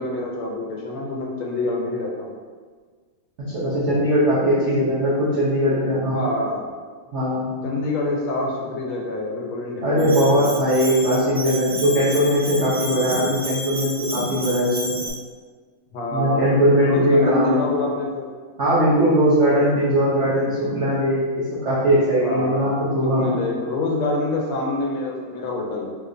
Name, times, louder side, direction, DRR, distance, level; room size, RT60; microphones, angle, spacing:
voice 1, 0.0-2.3 6.0-6.7 7.6-10.7 15.9-18.3 22.2-26.0, left 2 dB, 80° left, -1 dB, 1.5 m, -27 dB
voice 2, 3.5-6.3 7.1-7.5 9.8-15.0 16.1-17.6 18.6-23.4, equal, 75° right, -9 dB, 0.6 m, -20 dB
Bell, 10.0-15.1, equal, 30° right, 0.8 m, -31 dB
3.8 x 2.8 x 2.5 m, 1.5 s
omnidirectional pair, 2.3 m